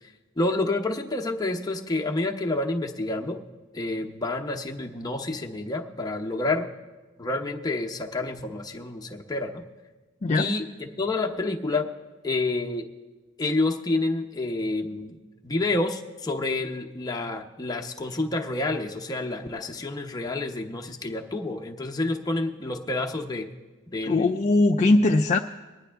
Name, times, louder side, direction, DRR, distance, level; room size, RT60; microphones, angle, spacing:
voice 1, 0.4-3.4 3.7-6.7 7.2-9.6 10.3-11.9 12.2-12.8 13.4-15.2 15.4-23.5 23.9-24.5, left 2 dB, 20° left, 1 dB, 0.8 m, -29 dB
voice 2, 24.1-25.4, left 2 dB, 35° left, 3 dB, 0.4 m, -20 dB
20.5 x 9.7 x 3.4 m, 1.2 s
head